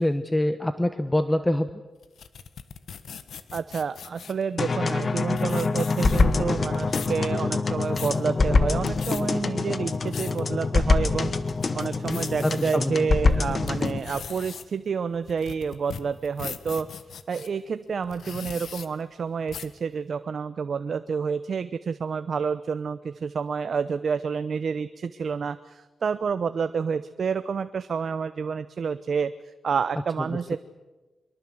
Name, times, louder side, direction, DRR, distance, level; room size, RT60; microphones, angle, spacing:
voice 1, 0.0-1.7 12.1-13.0, left 1 dB, 10° left, 10 dB, 1.1 m, -25 dB
sound 1, 2.0-4.4 5.1-5.2 5.4-6.4 6.7-7.2 7.7-8.2 8.7-9.2 9.8-10.4 10.9-11.0 11.5-12.8 13.3-17.5 18.0-18.9 19.5-19.8, left 7 dB, 80° left, 1.5 m, -39 dB
voice 2, 3.5-11.3 11.7-16.9 17.3-29.3 29.6-30.6, right 6 dB, 60° right, 11 dB, 0.8 m, -29 dB
sound 2, 4.6-14.0, left 3 dB, 45° left, 1.6 m, -25 dB
24.0 x 22.5 x 7.9 m, 1.2 s
cardioid pair, 90°, 0 cm